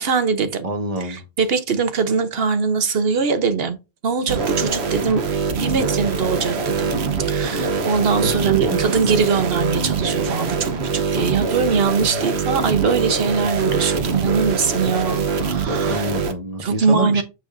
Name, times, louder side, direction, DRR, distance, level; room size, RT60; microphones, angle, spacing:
voice 1, 0.0-0.7 1.0-3.8 4.0-5.2 5.6-6.9 7.2-16.0 16.6-17.2, right 5 dB, 70° right, 1.2 m, -22 dB
voice 2, 0.6-1.2 8.2-8.8 15.8-17.2, right 1 dB, 35° right, 1.5 m, -26 dB
sound 1, 4.3-16.3, right 4 dB, 90° right, 1.2 m, -23 dB
6.5 x 6.3 x 2.6 m
omnidirectional pair, 1.1 m